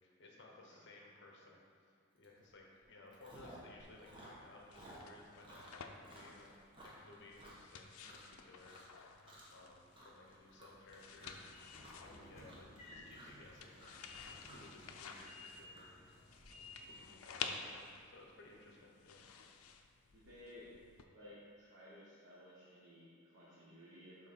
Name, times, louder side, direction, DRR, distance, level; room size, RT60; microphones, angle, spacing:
voice 1, 0.0-1.6 2.2-6.5 6.8-7.8 8.1-8.8 9.5-14.2 14.5-15.9 16.5-19.2, left 2 dB, 55° left, -1 dB, 1.0 m, -59 dB
Chewing mastication, 2.2-2.5 2.8-3.7 4.0-8.3 8.6-9.0 9.3-9.6 9.9-16.4, right 1 dB, 25° right, 1.1 m, -58 dB
sound 1, 3.8-21.0, left 6 dB, 80° left, 0.5 m, -52 dB
Train / Sliding door, 10.7-17.2, left 2 dB, 30° left, 1.7 m, -57 dB
voice 2, 20.1-20.8 21.1-24.3, left 1 dB, 55° right, -8 dB, 1.3 m, -57 dB
6.6 x 4.1 x 5.5 m, 2.2 s
head